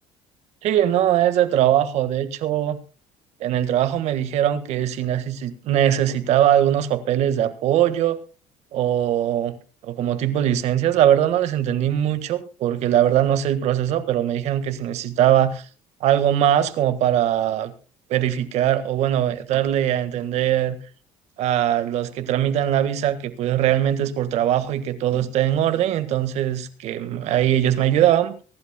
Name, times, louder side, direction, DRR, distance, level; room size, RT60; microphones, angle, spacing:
voice 1, 0.6-2.8 3.4-8.2 8.7-9.6 9.8-15.6 16.0-17.7 18.1-20.8 21.4-28.4, right 11 dB, 65° right, 1.6 m, -21 dB
24.0 x 11.5 x 2.2 m
cardioid pair, 135°, 12 cm